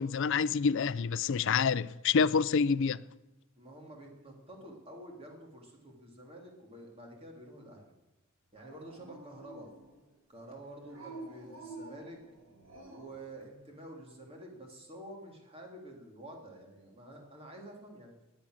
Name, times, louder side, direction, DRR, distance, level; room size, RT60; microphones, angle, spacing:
voice 1, 0.0-3.0, left 5 dB, 60° left, 0.5 m, -27 dB
voice 2, 3.6-7.9 8.5-9.7 10.3-12.2 12.9-18.1, right 1 dB, 30° right, 3.1 m, -49 dB
Dog, 8.6-10.1 10.9-13.2, right 2 dB, 80° right, 6.7 m, -49 dB
19.0 x 8.9 x 6.5 m
head